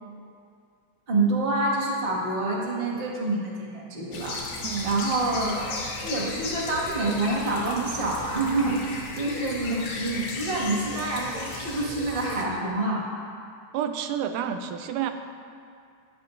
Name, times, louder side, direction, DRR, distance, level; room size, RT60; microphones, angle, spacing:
voice 1, 1.1-4.4 4.8-13.0, right 2 dB, 25° right, -4 dB, 1.4 m, -27 dB
sound 1, 4.1-12.4, left 3 dB, 70° left, 2.7 m, -35 dB
voice 2, 4.6-5.0 13.7-15.1, right 8 dB, 90° right, 7 dB, 2.2 m, -29 dB
18.5 x 10.5 x 2.6 m, 2.3 s
omnidirectional pair, 3.5 m